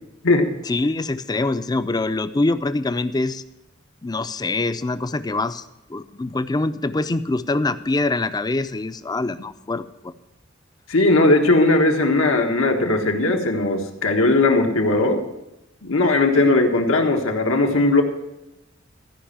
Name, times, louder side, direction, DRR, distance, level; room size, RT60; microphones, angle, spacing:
voice 1, 0.7-3.4 4.0-5.6 5.9-10.1, left 2 dB, 20° left, 12 dB, 0.5 m, -24 dB
voice 2, 10.9-15.2 15.8-18.0, left 2 dB, 85° left, 3 dB, 1.4 m, -18 dB
13.5 x 5.4 x 8.7 m, 0.95 s
head